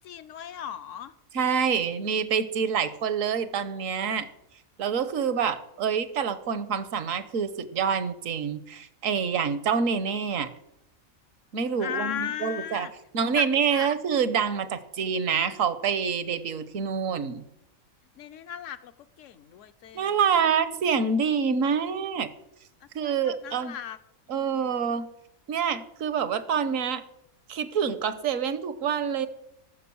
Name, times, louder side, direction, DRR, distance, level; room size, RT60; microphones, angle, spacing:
voice 1, 0.0-1.1 11.8-12.9 13.3-13.4 13.7-13.9 18.2-18.9 19.2-20.2 23.0-24.0 24.3-24.6, left 9 dB, 70° left, 12 dB, 1.0 m, -36 dB
voice 2, 1.3-4.3 4.8-10.5 11.5-12.9 13.1-17.4 19.9-22.3 22.9-23.8 24.3-25.1 25.5-27.0 27.5-29.3, right 6 dB, 70° right, 13 dB, 1.2 m, -26 dB
14.0 x 6.6 x 7.0 m, 0.81 s
omnidirectional pair, 1.4 m